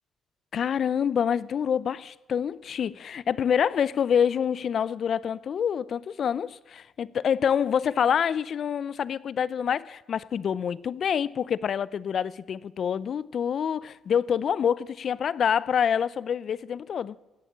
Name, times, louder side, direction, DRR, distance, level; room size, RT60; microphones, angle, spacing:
voice 1, 0.5-17.2, left 8 dB, 55° left, 0.5 m, -26 dB
16.5 x 7.2 x 10.0 m
cardioid pair, 90°, 0 cm